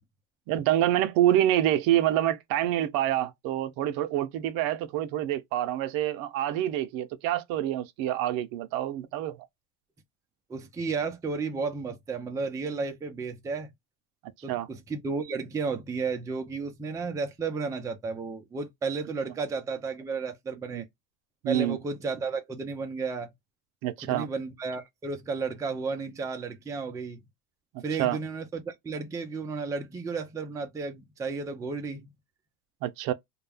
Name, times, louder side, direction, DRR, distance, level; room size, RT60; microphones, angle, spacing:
voice 1, 0.5-9.5 14.5-14.7 20.7-20.9 21.4-21.8 23.8-24.3 27.7-28.2 32.8-33.1, right 12 dB, 65° right, 0.6 m, -27 dB
voice 2, 10.5-13.7 14.4-20.9 21.5-23.3 24.0-27.2 27.8-32.1, right 4 dB, 10° right, 0.4 m, -33 dB
2.3 x 2.1 x 3.3 m
cardioid pair, 130°, 37 cm